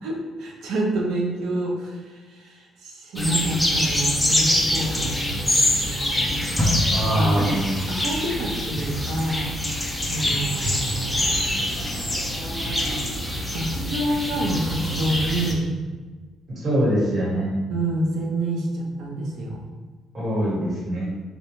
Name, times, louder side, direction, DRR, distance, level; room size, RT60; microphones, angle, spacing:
voice 1, 0.0-6.8 7.1-7.6 7.9-9.5 10.1-11.5 12.6-13.2 13.5-15.7 17.7-19.7, right 1 dB, 80° right, -1 dB, 0.7 m, -28 dB
sound 1, 3.2-15.5, left 1 dB, 5° left, 0.4 m, -25 dB
voice 2, 6.9-7.6 10.2-10.3 16.5-17.5 20.1-21.1, right 1 dB, 30° right, -7 dB, 1.2 m, -23 dB
3.9 x 2.2 x 3.0 m, 1.4 s
cardioid pair, 170°, 0 cm